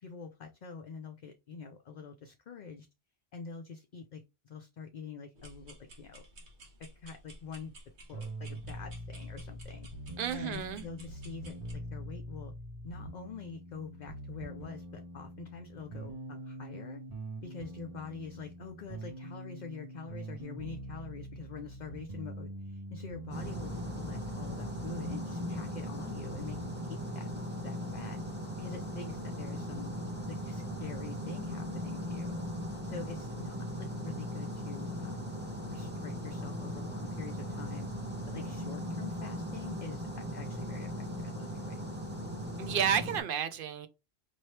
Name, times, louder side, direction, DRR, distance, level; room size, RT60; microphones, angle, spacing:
voice 1, 0.0-2.9 3.3-6.2 6.8-7.8 8.1-9.9 10.3-12.5 12.8-17.0 17.4-27.3 27.6-28.2 28.6-29.9 30.3-32.4 32.8-35.3 35.7-37.9 38.3-40.9 41.2-41.8, left 5 dB, 55° left, 0.6 m, -45 dB
sound 1, 5.3-11.7, right 1 dB, 85° right, 1.4 m, -53 dB
sound 2, 8.1-26.7, right 1 dB, 40° right, 1.0 m, -44 dB
voice 2, 10.2-10.8 42.6-43.9, right 8 dB, 60° right, 0.7 m, -31 dB
sound 3, 23.3-43.2, equal, 10° right, 0.9 m, -38 dB
4.4 x 3.0 x 3.2 m
omnidirectional pair, 1.1 m